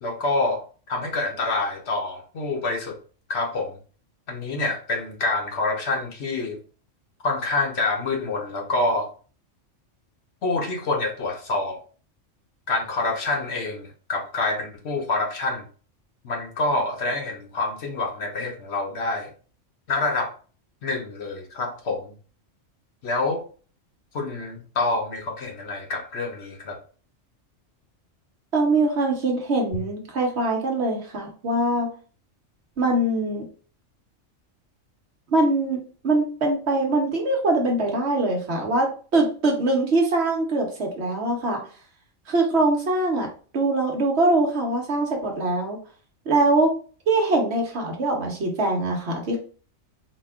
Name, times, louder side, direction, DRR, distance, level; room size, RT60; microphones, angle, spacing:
voice 1, 0.0-3.0 3.3-3.8 4.3-6.6 7.2-9.1 10.4-11.8 12.7-15.6 16.2-19.3 19.9-20.3 20.8-22.1 23.0-23.4 24.1-26.8, left 2 dB, 60° left, 2 dB, 1.0 m, -27 dB
voice 2, 28.5-31.9 32.8-33.4 35.3-41.6 42.3-43.3 43.5-45.8 46.3-46.7 47.1-49.4, right 2 dB, 60° right, 1 dB, 1.1 m, -23 dB
4.2 x 2.3 x 3.5 m, 0.39 s
omnidirectional pair, 1.3 m